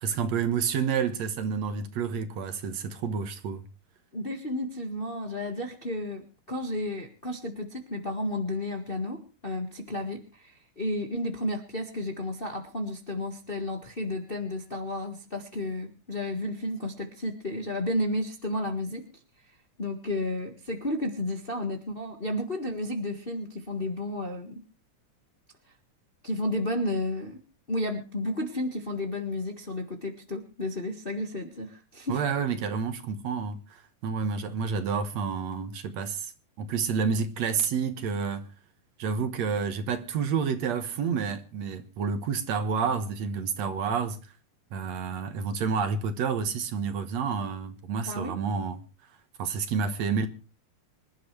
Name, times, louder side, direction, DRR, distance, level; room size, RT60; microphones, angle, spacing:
voice 1, 0.0-3.6 32.1-36.3 36.6-38.5 39.0-44.2 44.7-48.8 49.4-50.3, right 6 dB, 65° right, 2.4 m, -29 dB
voice 2, 4.1-19.0 19.8-24.6 26.2-27.4 27.7-32.2 48.1-48.3, left 1 dB, 25° left, 1.3 m, -32 dB
25.5 x 12.0 x 3.3 m
omnidirectional pair, 3.5 m